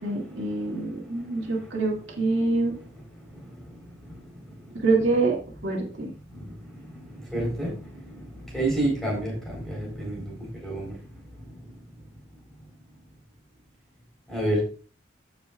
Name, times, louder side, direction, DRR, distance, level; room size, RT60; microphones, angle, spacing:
voice 1, 0.0-2.7 4.8-5.4 5.6-6.1, right 3 dB, 70° right, -2 dB, 2.2 m, -25 dB
voice 2, 6.3-10.9 14.3-14.6, right 1 dB, ahead, -2 dB, 4.0 m, -30 dB
15.5 x 5.2 x 2.4 m, 0.40 s
head